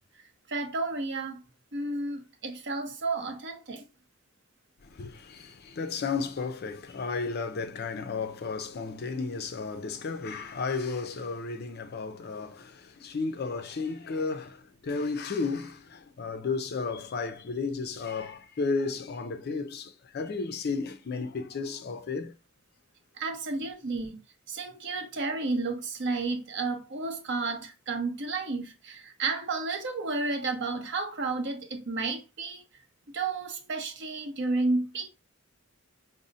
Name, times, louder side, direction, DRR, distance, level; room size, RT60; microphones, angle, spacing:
voice 1, 0.1-1.4 1.7-3.9 23.1-24.2 24.5-32.6 33.1-35.1, right 3 dB, 55° right, 0.7 m, -32 dB
voice 2, 4.8-22.3, left 4 dB, 50° left, 0.4 m, -33 dB
5.1 x 2.0 x 2.6 m
head